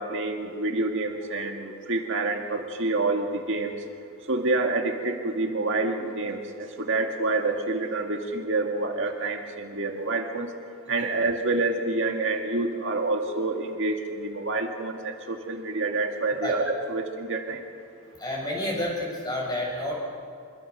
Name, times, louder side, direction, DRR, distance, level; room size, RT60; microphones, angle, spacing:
voice 1, 0.0-3.7 4.3-10.5 10.9-17.6, right 2 dB, 60° right, 3 dB, 1.9 m, -27 dB
voice 2, 18.2-19.9, left 1 dB, 20° left, -2 dB, 6.6 m, -30 dB
26.0 x 23.0 x 6.7 m, 2.4 s
head